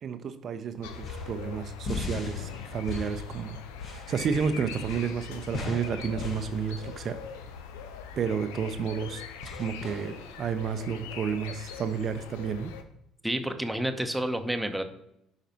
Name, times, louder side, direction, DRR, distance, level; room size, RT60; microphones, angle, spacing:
voice 1, 0.0-3.6 3.9-7.2 8.2-9.2 9.6-12.7, right 6 dB, 45° right, 9 dB, 0.5 m, -31 dB
sound 1, 0.7-10.6, left 3 dB, 40° left, 1.4 m, -41 dB
sound 2, 0.8-12.8, left 6 dB, 65° left, 0.6 m, -41 dB
voice 2, 13.2-14.8, right 1 dB, 5° right, 6 dB, 0.9 m, -29 dB
11.5 x 4.9 x 2.9 m, 0.79 s
figure-of-eight pair, 55°, 0 cm